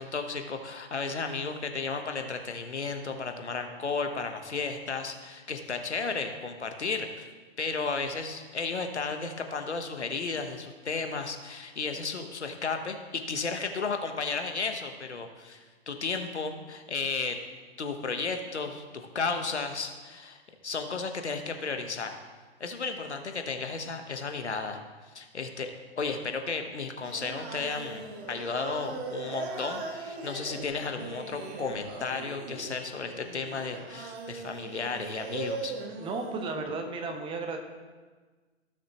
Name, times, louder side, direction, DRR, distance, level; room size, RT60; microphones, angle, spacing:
voice 1, 0.0-7.3 7.6-17.4 17.8-22.1 22.6-24.8 25.1-25.7 26.0-28.0 28.3-35.7, left 4 dB, 80° left, 6 dB, 1.2 m, -33 dB
Singing, 27.0-36.5, right 3 dB, 35° right, 1.5 m, -39 dB
voice 2, 36.0-37.6, right 3 dB, 15° right, 5 dB, 0.8 m, -34 dB
16.5 x 6.5 x 3.0 m, 1.4 s
figure-of-eight pair, 115°, 33 cm